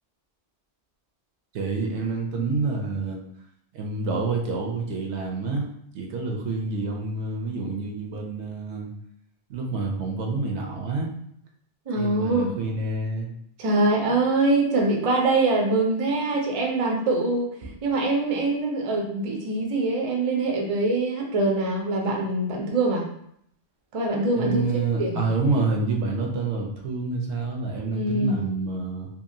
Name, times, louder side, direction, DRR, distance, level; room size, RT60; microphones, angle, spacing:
voice 1, 1.5-3.2 3.7-5.6 5.9-8.9 9.5-11.1 12.0-13.3 24.3-29.1, right 3 dB, 75° right, 0 dB, 0.9 m, -28 dB
voice 2, 11.9-12.5 13.6-23.1 23.9-24.6 25.0-25.2 27.9-28.4, right 2 dB, 45° right, 0 dB, 0.4 m, -24 dB
2.9 x 2.4 x 2.5 m, 0.70 s
omnidirectional pair, 1.2 m